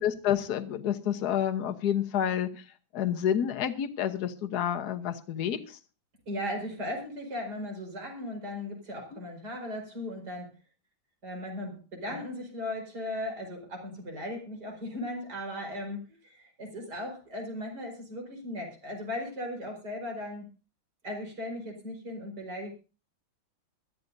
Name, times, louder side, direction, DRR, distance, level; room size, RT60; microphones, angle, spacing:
voice 1, 0.0-2.6 2.9-5.8 9.1-9.2 12.1-12.2, left 9 dB, 60° left, 7 dB, 1.5 m, -29 dB
voice 2, 6.3-10.5 11.2-20.5 21.0-22.7, left 1 dB, 55° right, 2 dB, 5.2 m, -37 dB
21.0 x 13.0 x 2.7 m, 0.33 s
omnidirectional pair, 2.2 m